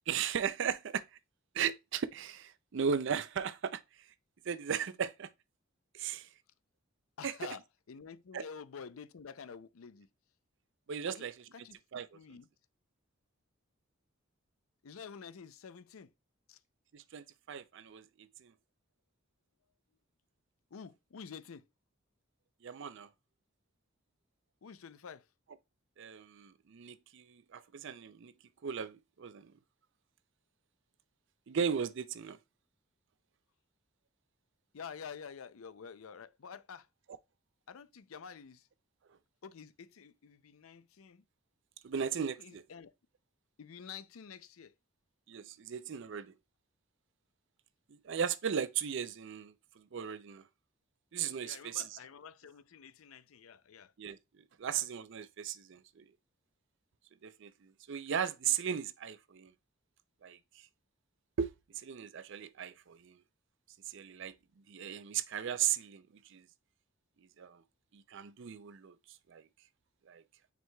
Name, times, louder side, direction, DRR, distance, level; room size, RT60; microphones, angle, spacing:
voice 1, 0.1-1.0 1.5-4.1 4.4-5.3 5.9-6.3 7.2-7.6 8.3-8.4 10.9-11.5 11.9-12.2 16.9-18.0 18.4-18.5 22.6-23.1 26.0-28.3 28.6-29.5 31.5-32.4 41.8-42.6 45.3-46.3 47.9-50.4 51.1-52.0 54.0-56.1 57.2-59.5 60.2-60.7 61.4-63.2 63.9-64.3 64.7-66.4 67.4-67.6 67.9-69.5 70.1-70.2, right 7 dB, 60° right, 0.4 m, -37 dB
voice 2, 7.2-7.6 7.9-10.1 11.1-11.3 11.5-11.8 12.1-12.5 14.8-16.1 16.5-16.6 20.7-21.6 24.6-25.3 34.7-36.9 37.7-38.6 39.4-41.2 42.4-42.9 43.6-44.7 51.4-53.9, left 6 dB, 85° left, 0.5 m, -49 dB
9.1 x 4.7 x 2.3 m
head